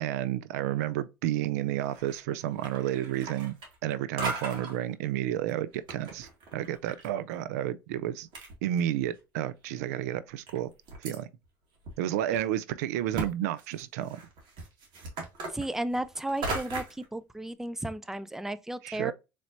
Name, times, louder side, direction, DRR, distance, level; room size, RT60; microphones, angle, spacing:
voice 1, 0.0-3.5 3.8-8.3 8.6-10.7 11.0-11.3 12.0-14.2 18.8-19.1, right 12 dB, 85° right, 0.4 m, -31 dB
sound 1, 1.8-2.2 2.5-3.9 4.2-4.8 5.5-7.1 7.3-7.4 8.1-8.2 8.3-9.2 9.7-9.8 10.5-11.2 11.8-11.9 12.3-12.4 13.1-13.3 13.6-17.0, right 3 dB, 60° right, 1.8 m, -37 dB
voice 2, 15.5-19.1, right 1 dB, 5° right, 0.4 m, -34 dB
4.1 x 3.3 x 2.5 m
supercardioid pair, 85°, 8 cm